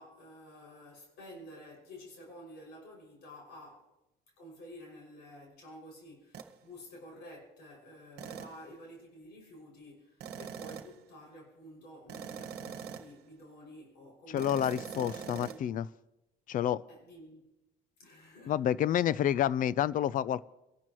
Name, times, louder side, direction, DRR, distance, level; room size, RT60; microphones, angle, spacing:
voice 1, 0.0-3.9 4.4-15.7 16.9-17.5 18.0-18.5, equal, 85° left, -2 dB, 6.0 m, -51 dB
sound 1, 6.3-6.6 8.2-8.7 10.2-11.0 12.1-13.2 14.4-15.6, right 8 dB, 70° right, 1.2 m, -43 dB
voice 2, 14.3-15.9 16.5-16.8 18.5-20.5, left 10 dB, 55° left, 20 dB, 0.5 m, -29 dB
24.0 x 12.5 x 3.0 m, 0.94 s
cardioid pair, 110°, 17 cm